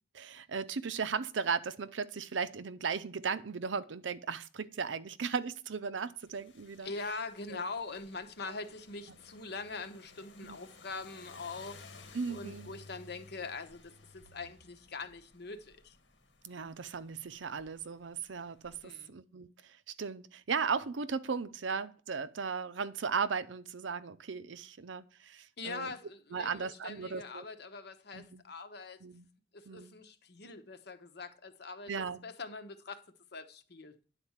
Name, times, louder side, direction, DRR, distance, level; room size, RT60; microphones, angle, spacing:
voice 1, 0.1-6.9 7.5-7.6 10.4-10.6 12.1-12.7 16.4-25.9 26.3-27.4 28.1-28.4 29.0-29.3 29.7-29.9 31.9-32.2, right 5 dB, 85° right, 0.6 m, -36 dB
sound 1, 6.3-18.8, left 3 dB, 80° left, 1.5 m, -57 dB
voice 2, 6.8-11.8 12.0-16.0 18.8-19.1 25.6-29.0 29.5-33.0 33.3-33.9, left 3 dB, 60° left, 1.0 m, -43 dB
10.0 x 4.3 x 7.3 m
head